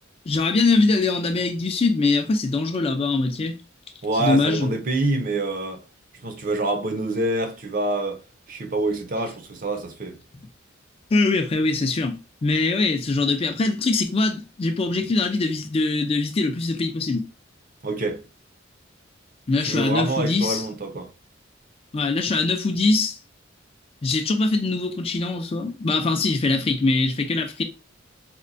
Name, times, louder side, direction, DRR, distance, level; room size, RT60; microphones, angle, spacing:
voice 1, 0.3-3.6 4.2-4.7 11.1-17.3 19.5-20.6 21.9-23.2 24.0-27.6, left 3 dB, 30° left, 0.4 m, -22 dB
voice 2, 4.0-5.8 6.2-8.2 8.5-10.2 17.8-18.2 19.6-21.1, right 2 dB, 45° right, 0.6 m, -26 dB
4.3 x 2.2 x 2.5 m
head